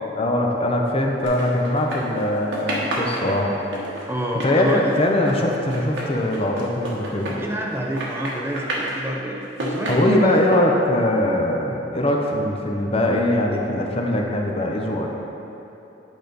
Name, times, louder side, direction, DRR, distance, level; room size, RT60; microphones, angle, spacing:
voice 1, 0.1-3.5 4.4-7.4 9.9-15.1, left 1 dB, 35° left, 1 dB, 0.7 m, -21 dB
sound 1, 1.2-2.2 2.5-7.7 8.0-8.9 9.4-10.6, right 1 dB, 80° right, 1.3 m, -30 dB
voice 2, 4.1-4.9 7.3-10.4 11.7-11.8, right 1 dB, 15° right, 0 dB, 0.5 m, -28 dB
8.9 x 5.0 x 4.0 m, 2.9 s
head